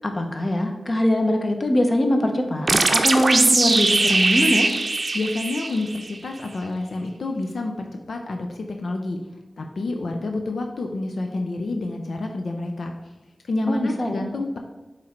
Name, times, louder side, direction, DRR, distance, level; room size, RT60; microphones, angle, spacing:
voice 1, 0.0-4.7 13.7-14.2, left 1 dB, 40° left, 4 dB, 0.9 m, -22 dB
sound 1, 2.7-6.2, right 3 dB, 50° right, 0.6 m, -20 dB
voice 2, 5.1-9.2 9.6-12.9 13.5-14.6, left 2 dB, 80° left, 3 dB, 0.6 m, -28 dB
7.6 x 3.2 x 4.4 m, 1.1 s
wide cardioid pair, 70°, 0 cm